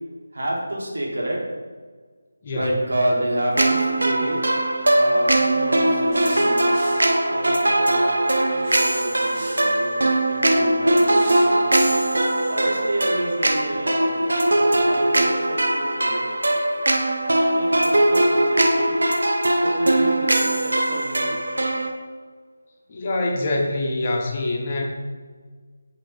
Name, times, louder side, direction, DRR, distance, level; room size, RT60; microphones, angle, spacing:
voice 1, 0.3-1.5 2.5-4.5 4.9-6.8 7.2-11.7 12.5-16.9 17.3-19.0 19.6-21.7, right 1 dB, 75° right, -2 dB, 1.3 m, -29 dB
sound 1, 3.6-21.9, right 1 dB, 90° right, 0.6 m, -20 dB
sound 2, 6.1-7.2 7.7-7.8 8.6-9.7 11.1-12.2 12.7-12.8, equal, 15° right, 1.4 m, -38 dB
voice 2, 22.9-24.8, left 2 dB, 30° left, 0 dB, 0.5 m, -25 dB
6.2 x 2.5 x 3.1 m, 1.5 s
figure-of-eight pair, 170°, 0 cm